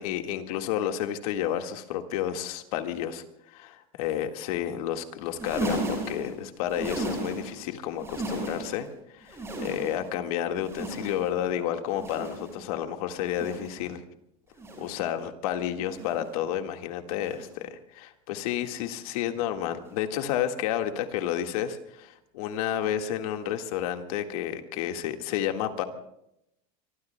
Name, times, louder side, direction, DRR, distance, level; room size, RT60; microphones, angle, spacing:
voice 1, 0.0-14.0 14.8-25.8, left 10 dB, 70° left, 5 dB, 1.8 m, -31 dB
sound 1, 5.2-7.6 7.9-8.9 9.2-10.2 10.6-11.4 11.9-12.6 13.2-13.9 14.5-15.1 15.8-16.4 17.2-17.6 18.5-18.8 19.8-20.0 21.2-21.3, right 2 dB, 15° right, 5.3 m, -36 dB
25.0 x 24.0 x 2.3 m, 0.78 s
cardioid pair, 180°, 19 cm